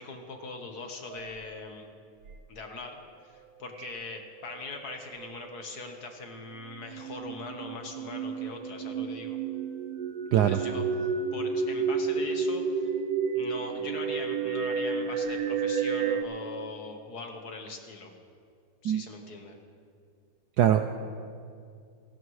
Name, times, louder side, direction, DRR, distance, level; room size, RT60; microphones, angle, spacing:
voice 1, 0.0-1.9 2.5-9.4 10.3-12.9 13.3-18.1 18.8-19.6, left 3 dB, 50° left, 4 dB, 1.7 m, -41 dB
sound 1, 1.1-1.6 2.3-2.4 3.8-4.2 4.4-5.4 6.7-16.2, right 5 dB, 70° right, 1.5 m, -31 dB
voice 2, 10.3-10.6 18.8-19.1 20.6-20.9, right 11 dB, 90° right, 7 dB, 0.9 m, -22 dB
29.5 x 11.5 x 3.2 m, 2.3 s
omnidirectional pair, 2.3 m